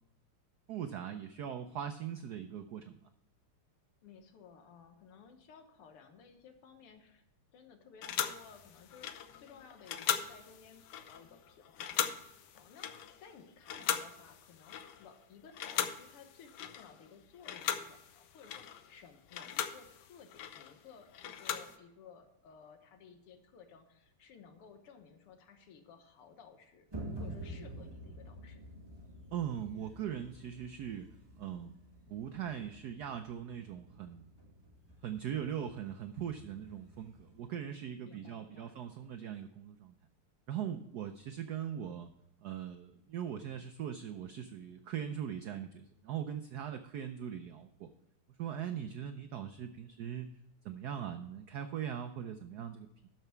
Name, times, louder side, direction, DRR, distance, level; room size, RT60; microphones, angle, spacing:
voice 1, 0.7-3.0 29.3-31.1 31.4-31.7 32.1-34.3 35.0-39.9 40.5-42.1 42.4-47.9 48.4-50.3 50.6-53.1, right 9 dB, 90° right, 8 dB, 0.8 m, -40 dB
voice 2, 4.0-7.2 7.5-26.9 27.2-28.6 38.0-38.8, left 6 dB, 90° left, 6 dB, 2.1 m, -57 dB
sound 1, 8.0-15.2 15.5-17.1 17.4-21.8, left 9 dB, 70° left, 1.1 m, -39 dB
sound 2, 26.9-37.5, right 1 dB, 15° right, 1.3 m, -49 dB
12.5 x 6.0 x 4.5 m, 0.86 s
omnidirectional pair, 2.4 m